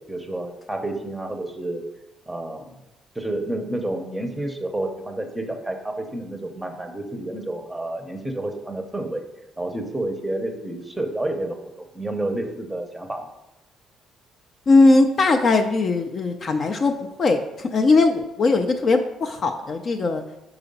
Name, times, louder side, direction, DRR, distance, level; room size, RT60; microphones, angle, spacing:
voice 1, 0.1-1.8 2.3-2.7 3.1-9.2 9.6-13.3, right 1 dB, 5° right, 4 dB, 0.7 m, -30 dB
voice 2, 14.7-16.9 17.2-20.2, left 3 dB, 35° left, 5 dB, 0.4 m, -19 dB
5.8 x 4.8 x 5.3 m, 0.92 s
cardioid pair, 160°, 0 cm